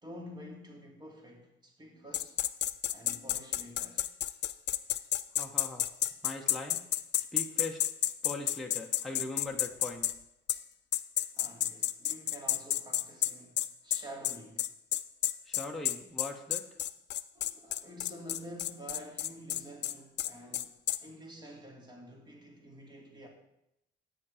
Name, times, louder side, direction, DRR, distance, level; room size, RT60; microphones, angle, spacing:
voice 1, 0.0-2.4 2.9-4.0 11.3-14.7 17.3-23.3, equal, 20° right, 2.3 m, -49 dB
sound 1, 2.1-10.1 10.5-10.6 10.9-21.0, left 12 dB, 60° left, 0.5 m, -31 dB
voice 2, 5.4-5.9 6.2-6.8 7.3-7.8 8.2-10.1 15.5-16.6, left 2 dB, ahead, 1.1 m, -40 dB
9.5 x 8.8 x 4.9 m
cardioid pair, 115°, 20 cm